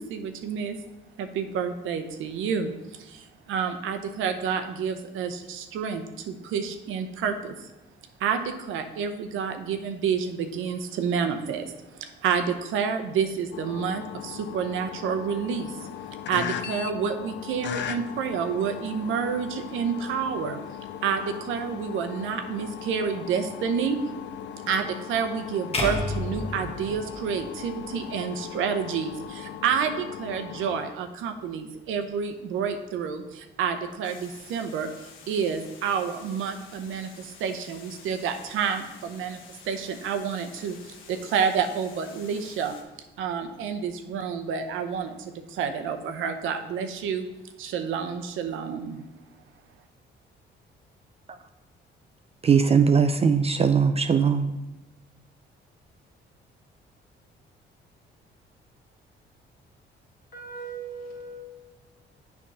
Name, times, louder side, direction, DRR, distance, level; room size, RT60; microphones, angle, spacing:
voice 1, 0.1-0.8 1.2-7.7 8.2-15.9 16.3-20.6 21.0-24.0 24.7-34.9 35.3-39.4 39.6-42.8 43.2-47.3 47.6-49.0, right 6 dB, 85° right, 7 dB, 0.7 m, -29 dB
sound 1, 13.5-30.9, left 10 dB, 65° left, 0.5 m, -39 dB
sound 2, 25.7-28.0, left 2 dB, 30° left, 1.3 m, -31 dB
Water, 34.0-42.8, left 5 dB, 85° left, 1.0 m, -50 dB
voice 2, 52.4-54.5, right 6 dB, 30° right, 9 dB, 0.4 m, -20 dB
voice 3, 60.3-61.7, right 3 dB, 50° left, -2 dB, 2.5 m, -39 dB
7.6 x 3.5 x 5.4 m, 1.0 s
cardioid pair, 90°, 20 cm